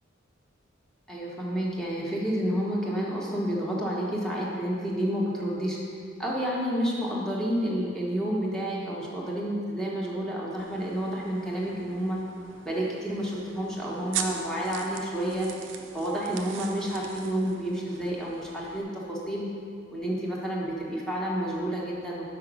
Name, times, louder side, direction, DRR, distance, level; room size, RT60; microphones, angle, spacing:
voice 1, 1.1-5.8 6.2-12.2 12.6-15.5 15.9-19.5 19.9-22.2, equal, 5° left, -5 dB, 1.1 m, -30 dB
sound 1, 10.6-18.8, right 7 dB, 65° right, 0.5 m, -41 dB
5.6 x 4.9 x 6.1 m, 2.3 s
head